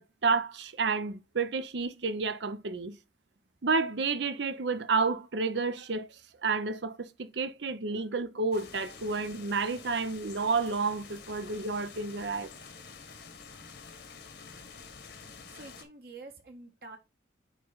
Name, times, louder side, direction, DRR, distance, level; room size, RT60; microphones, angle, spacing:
voice 1, 0.0-3.0 3.6-6.1 6.4-12.5, right 4 dB, 70° right, 0.7 m, -30 dB
sound 1, 8.5-15.9, left 5 dB, 65° left, 1.3 m, -48 dB
voice 2, 15.1-17.0, right 3 dB, 55° right, 1.3 m, -48 dB
9.0 x 3.2 x 3.9 m
head